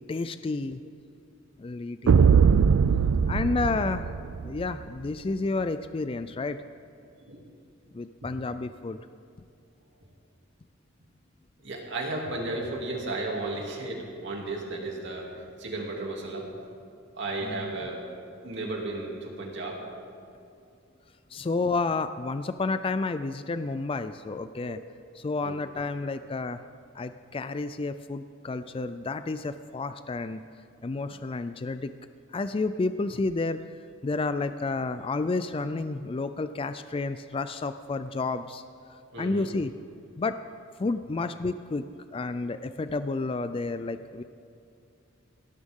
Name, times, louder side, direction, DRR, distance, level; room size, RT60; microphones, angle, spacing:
voice 1, 0.1-0.8 1.6-2.4 3.3-4.1 4.4-6.6 7.9-9.0 17.4-17.7 21.3-24.8 25.1-26.6 26.9-30.4 30.8-31.9 32.3-33.6 34.0-38.6 39.2-39.7 40.2-40.4 40.8-41.8 42.1-44.2, left 3 dB, 25° left, 11 dB, 0.4 m, -30 dB
sound 1, 2.1-4.7, right 6 dB, 90° right, 0.4 m, -21 dB
voice 2, 11.6-16.5 17.2-18.0 18.4-19.8 21.4-21.5 24.6-24.8 25.4-25.6 39.1-39.5, right 2 dB, 60° right, -1 dB, 2.7 m, -34 dB
19.5 x 17.5 x 3.7 m, 2.6 s
head